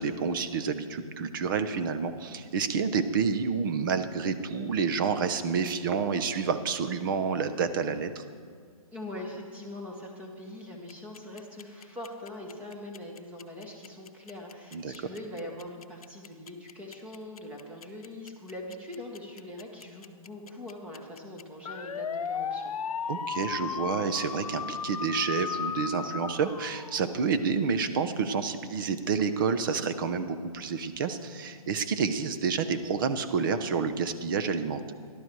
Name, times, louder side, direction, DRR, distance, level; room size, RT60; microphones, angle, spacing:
voice 1, 0.0-8.2 14.7-14.9 23.1-34.9, right 5 dB, 35° right, 10 dB, 0.8 m, -29 dB
voice 2, 8.9-22.7, left 1 dB, 5° right, 0 dB, 1.4 m, -42 dB
sound 1, 10.9-27.4, left 7 dB, 75° left, 0.8 m, -36 dB
14.0 x 12.0 x 4.7 m, 2.1 s
hypercardioid pair, 160°, 19 cm